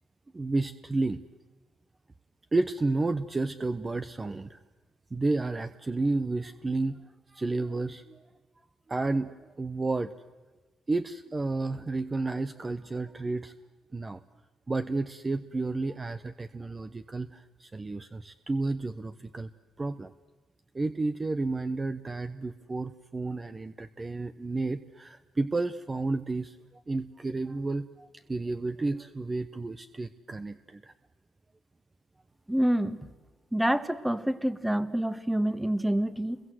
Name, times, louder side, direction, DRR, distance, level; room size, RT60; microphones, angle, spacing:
voice 1, 0.3-1.2 2.5-4.6 5.1-8.2 8.9-10.1 10.9-13.5 13.9-14.2 14.7-19.5 19.8-20.1 20.7-30.9, right 3 dB, 25° right, 10 dB, 0.9 m, -31 dB
voice 2, 32.5-33.1 33.5-36.4, right 1 dB, 5° right, 12 dB, 1.5 m, -27 dB
29.5 x 22.5 x 7.9 m, 1.2 s
cardioid pair, 90°, 0 cm